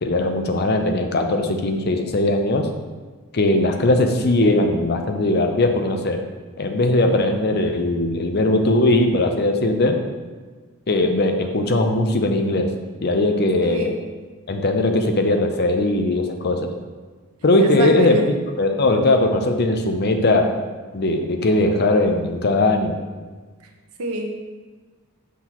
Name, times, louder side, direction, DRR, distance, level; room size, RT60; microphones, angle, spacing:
voice 1, 0.0-2.7 3.3-6.2 6.6-10.0 10.9-12.7 13.0-13.9 14.5-16.7 17.4-18.2 18.6-20.6 20.9-23.0, left 2 dB, 50° left, 5 dB, 0.5 m, -19 dB
voice 2, 17.6-18.3 24.0-24.4, right 1 dB, 90° right, 2 dB, 0.9 m, -26 dB
6.1 x 5.9 x 3.0 m, 1.4 s
head